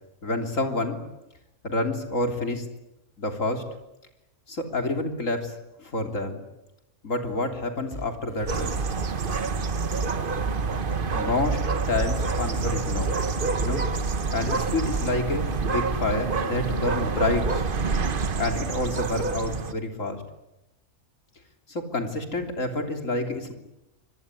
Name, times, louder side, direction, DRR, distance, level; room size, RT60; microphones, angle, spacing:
voice 1, 0.2-1.0 1.6-2.7 3.2-3.6 4.5-6.4 7.0-8.7 11.1-13.1 13.6-13.9 14.3-17.6 18.4-20.2 21.7-23.5, left 2 dB, 60° left, 4 dB, 3.7 m, -28 dB
sound 1, 7.9-15.7, right 1 dB, 20° left, 6.8 m, -38 dB
sound 2, 8.5-19.7, right 4 dB, 40° right, 1.2 m, -27 dB
25.5 x 21.5 x 9.9 m, 0.94 s
omnidirectional pair, 1.5 m